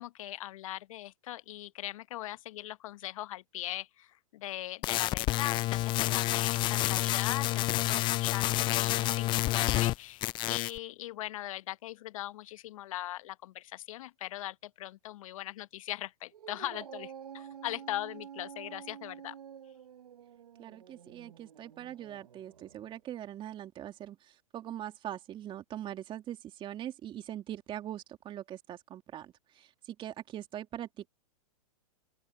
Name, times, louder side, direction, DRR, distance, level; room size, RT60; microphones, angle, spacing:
voice 1, 0.0-19.4, left 14 dB, 60° left, 1.0 m, -40 dB
sound 1, 4.8-10.0 10.2-10.8, left 17 dB, 25° left, 0.4 m, -29 dB
Dog, 16.3-22.9, right 8 dB, 85° right, 1.1 m, -49 dB
voice 2, 20.6-31.1, right 11 dB, 25° right, 2.6 m, -42 dB
open air
hypercardioid pair, 125°, 19 cm